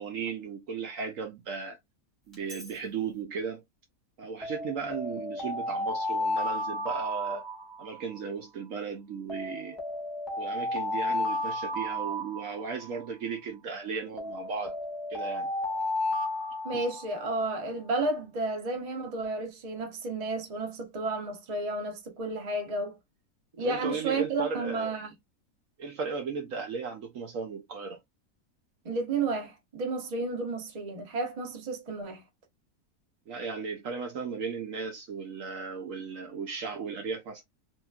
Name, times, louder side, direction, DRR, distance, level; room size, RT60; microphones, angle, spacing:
voice 1, 0.0-1.8 2.3-3.6 4.2-7.4 7.8-9.8 10.4-14.7 15.1-15.5 16.7-16.8 23.6-25.0 25.8-28.0 33.3-37.4, right 5 dB, 65° right, 0.9 m, -36 dB
Alarm, 2.3-2.7 4.4-8.2 9.3-13.1 14.2-17.4, left 1 dB, ahead, 1.0 m, -33 dB
voice 2, 16.6-23.0 23.6-25.1 28.8-32.2, right 3 dB, 35° right, 0.6 m, -32 dB
3.0 x 2.9 x 2.3 m
omnidirectional pair, 1.7 m